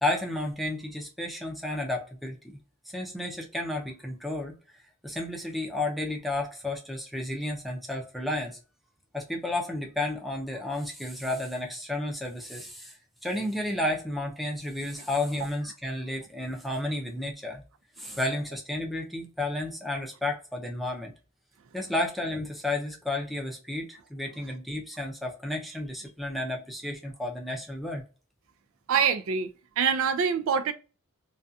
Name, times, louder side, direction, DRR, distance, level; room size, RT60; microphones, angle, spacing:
voice 1, 0.0-2.4 2.9-4.6 5.0-8.6 9.1-12.9 13.2-17.6 18.0-21.1 21.7-28.0, left 1 dB, ahead, 0.5 m, -32 dB
voice 2, 28.9-29.5 29.8-30.7, right 6 dB, 80° right, 0.4 m, -25 dB
2.4 x 2.2 x 2.6 m
head